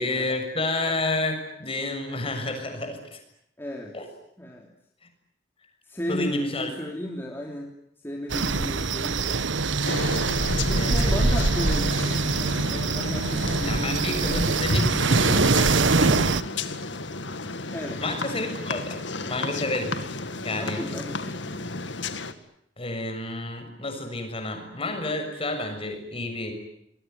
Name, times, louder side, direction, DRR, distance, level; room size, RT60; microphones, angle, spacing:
voice 1, 0.0-3.2 3.9-4.1 6.1-6.7 10.7-11.4 13.7-16.4 18.0-20.0 20.4-20.8 22.8-26.5, left 2 dB, 30° left, 6 dB, 6.9 m, -30 dB
voice 2, 3.6-3.9 4.4-4.7 5.8-7.7 8.0-9.5 10.7-14.5 17.7-18.0 20.5-21.9, equal, 10° left, 0 dB, 3.3 m, -34 dB
sound 1, 8.3-16.4, right 3 dB, 85° right, 1.2 m, -23 dB
sound 2, 9.8-22.3, left 3 dB, 75° left, 2.1 m, -32 dB
27.5 x 22.0 x 9.6 m, 0.74 s
head